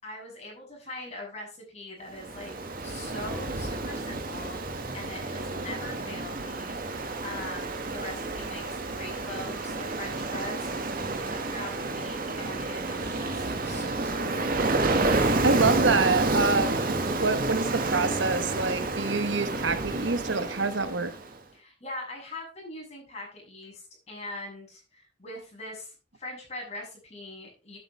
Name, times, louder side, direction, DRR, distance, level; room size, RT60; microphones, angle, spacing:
voice 1, 0.0-14.6 21.5-27.8, left 2 dB, 35° left, 6.9 m, -42 dB
Ocean, 2.1-21.3, right 2 dB, 50° right, 1.6 m, -30 dB
voice 2, 15.4-21.1, right 3 dB, 80° right, 1.2 m, -27 dB
11.0 x 9.0 x 3.3 m
head